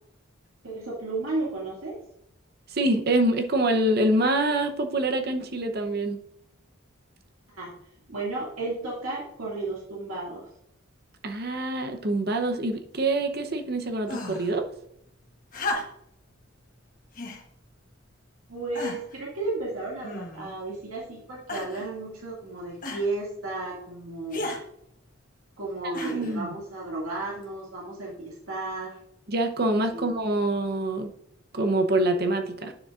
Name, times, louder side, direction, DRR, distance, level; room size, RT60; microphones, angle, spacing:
voice 1, 0.6-2.0 7.5-7.7 8.1-10.5 18.5-24.5 25.6-29.0 29.9-30.1, right 2 dB, 90° right, -4 dB, 2.2 m, -33 dB
voice 2, 2.7-6.2 11.2-14.7 25.8-26.5 29.3-31.1 31.5-32.7, right 1 dB, 50° right, 6 dB, 0.8 m, -25 dB
sound 1, 14.1-14.5 15.5-16.2 17.1-17.4 18.2-18.3 18.7-19.2 20.0-20.6 21.5-21.9 22.8-23.1 24.3-24.6 25.9-26.4 27.4-27.5, left 2 dB, 40° left, 1.2 m, -34 dB
9.5 x 6.9 x 2.5 m, 0.74 s
head